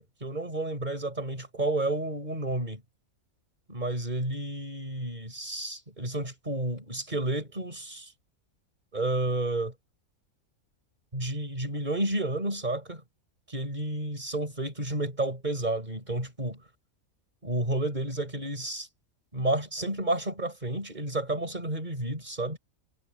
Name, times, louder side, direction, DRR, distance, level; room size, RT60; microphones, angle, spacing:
voice 1, 0.0-2.8 3.7-8.1 8.9-9.7 11.1-13.0 13.5-16.6 17.4-18.9 19.3-22.6, right 1 dB, 30° right, 6.4 m, -31 dB
omnidirectional pair, 1.5 m